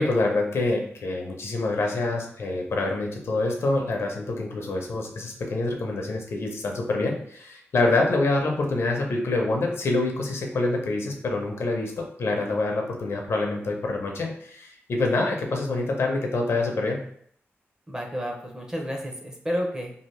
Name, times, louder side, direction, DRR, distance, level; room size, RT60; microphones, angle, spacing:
voice 1, 0.0-17.0, left 2 dB, 65° left, 1 dB, 0.5 m, -26 dB
voice 2, 17.9-19.9, equal, 15° right, 0 dB, 0.5 m, -31 dB
2.7 x 2.4 x 3.1 m, 0.64 s
wide cardioid pair, 180°, 5 cm